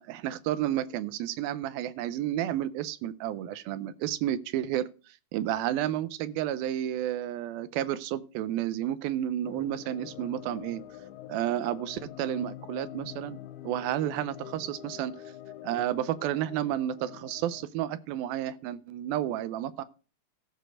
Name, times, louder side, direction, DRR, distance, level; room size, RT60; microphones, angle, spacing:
voice 1, 0.0-4.9 5.3-10.8 11.3-13.4 13.6-15.1 15.6-19.8, right 12 dB, 80° right, 2.4 m, -31 dB
sound 1, 9.4-17.7, left 12 dB, 90° left, 2.7 m, -45 dB
14.5 x 5.0 x 6.3 m
omnidirectional pair, 4.5 m